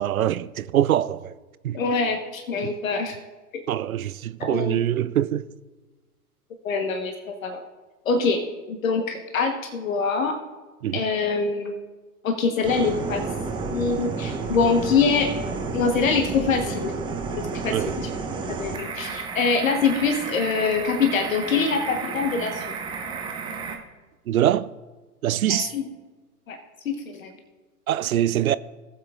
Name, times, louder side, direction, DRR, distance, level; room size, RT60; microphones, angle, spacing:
voice 1, 0.0-1.3 1.6-1.8 2.6-2.7 3.7-5.4 10.8-11.1 17.7-17.9 24.3-24.7 25.2-25.7 27.9-28.6, right 11 dB, 65° right, 0.5 m, -23 dB
voice 2, 1.7-3.1 3.5-3.6 4.4-4.8 6.6-7.6 8.0-8.4 8.7-10.3 10.9-11.7 12.2-13.2 13.7-15.3 15.7-16.9 17.3-17.7 18.6-22.7 25.5-25.8 26.5-26.6 26.8-27.3, left 5 dB, 60° left, 1.3 m, -24 dB
sound 1, 12.6-23.8, right 4 dB, 10° right, 0.6 m, -31 dB
18.5 x 7.5 x 2.4 m
figure-of-eight pair, 110°, 46 cm